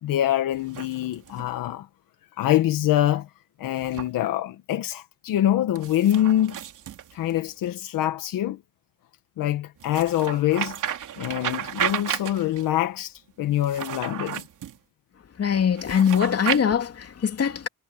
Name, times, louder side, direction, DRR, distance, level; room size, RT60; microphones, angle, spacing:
voice 1, 0.0-1.9 2.4-3.3 3.6-6.5 7.1-8.6 9.4-10.8 11.2-14.4, left 12 dB, 85° left, 1.4 m, -24 dB
sound 1, 0.5-1.5 3.8-4.1 5.7-7.7 9.8-12.7 13.5-14.8 15.8-16.6, right 10 dB, 65° right, 3.3 m, -32 dB
voice 2, 15.1-17.7, left 7 dB, 45° left, 3.0 m, -23 dB
cardioid pair, 110°, 33 cm